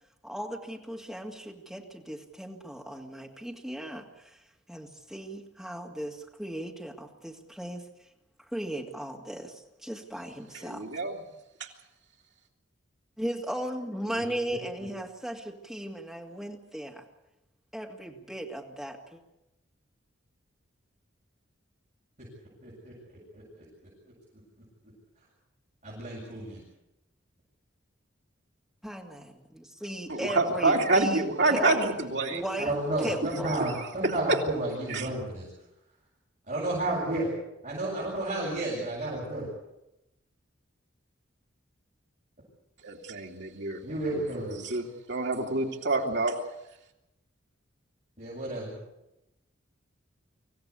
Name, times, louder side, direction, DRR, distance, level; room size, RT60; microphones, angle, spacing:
voice 1, 0.2-4.4 4.7-7.9 8.5-10.8 13.2-17.0 17.7-19.2 28.8-31.9 32.3-32.7 33.0-33.6, right 1 dB, ahead, -1 dB, 2.4 m, -37 dB
voice 2, 10.5-11.2 11.6-11.7 30.1-32.4 33.7-34.1 34.9-35.1 42.8-43.8 44.1-46.3, right 2 dB, 60° right, 1 dB, 2.8 m, -28 dB
voice 3, 22.6-23.6 25.8-26.6 32.6-35.4 36.5-37.3 37.6-39.5 43.8-44.6 48.2-48.8, right 1 dB, 40° right, -7 dB, 7.6 m, -32 dB
25.5 x 16.0 x 8.4 m, 0.90 s
head